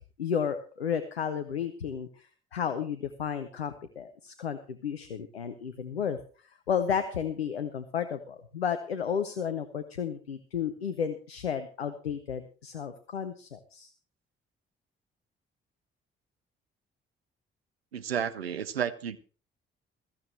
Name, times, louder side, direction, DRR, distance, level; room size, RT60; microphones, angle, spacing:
voice 1, 0.2-2.3 2.5-6.2 6.7-13.9, left 7 dB, 85° left, 0.6 m, -32 dB
voice 2, 17.9-19.2, right 8 dB, 85° right, 0.6 m, -31 dB
15.5 x 14.0 x 3.2 m
figure-of-eight pair, 40°, 30 cm